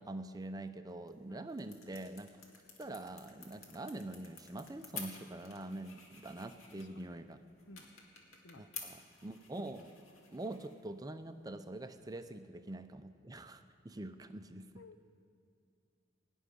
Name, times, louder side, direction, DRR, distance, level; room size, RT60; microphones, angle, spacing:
voice 1, 0.0-2.4 2.8-7.4 8.6-9.9 10.3-14.8, right 2 dB, 20° right, 9 dB, 0.5 m, -45 dB
sound 1, 0.9-12.4, left 5 dB, 90° left, 2.1 m, -53 dB
voice 2, 14.8-15.1, left 2 dB, 65° left, 11 dB, 0.7 m, -55 dB
17.5 x 6.3 x 9.9 m, 2.4 s
head